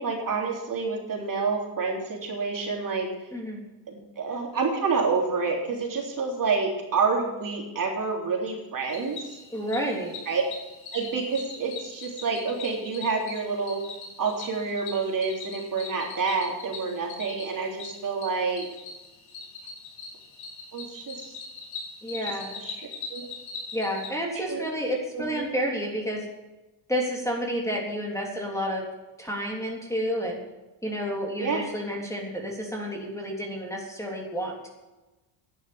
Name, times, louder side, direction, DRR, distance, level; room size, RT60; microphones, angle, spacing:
voice 1, 0.0-3.1 3.9-9.4 10.3-10.4 10.9-13.8 14.2-18.7 20.7-21.3 22.6-22.8 23.1-23.3 24.4-24.6 25.1-25.5 31.4-31.6, right 4 dB, 40° right, -1 dB, 3.5 m, -28 dB
voice 2, 3.3-3.6 9.5-10.1 22.0-22.5 23.7-26.3 26.9-28.8 29.2-30.4 30.8-34.7, equal, 5° left, -1 dB, 3.5 m, -30 dB
Cricket, 8.9-24.1, left 4 dB, 75° left, 4.4 m, -41 dB
11.5 x 10.0 x 7.0 m, 1.1 s
cardioid pair, 100°, 47 cm